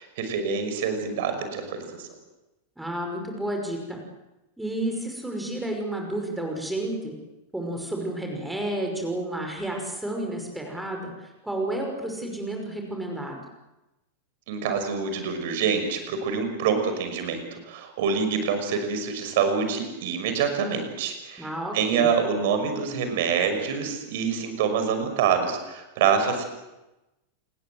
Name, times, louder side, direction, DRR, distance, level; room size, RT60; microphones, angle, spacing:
voice 1, 0.0-2.1 14.5-21.5 21.7-26.5, right 6 dB, 50° right, 7 dB, 5.9 m, -26 dB
voice 2, 2.8-4.0 4.6-7.1 7.5-13.4 21.4-22.1, right 1 dB, 5° right, 2 dB, 5.6 m, -31 dB
28.5 x 20.0 x 7.9 m, 0.98 s
figure-of-eight pair, 90°, 0 cm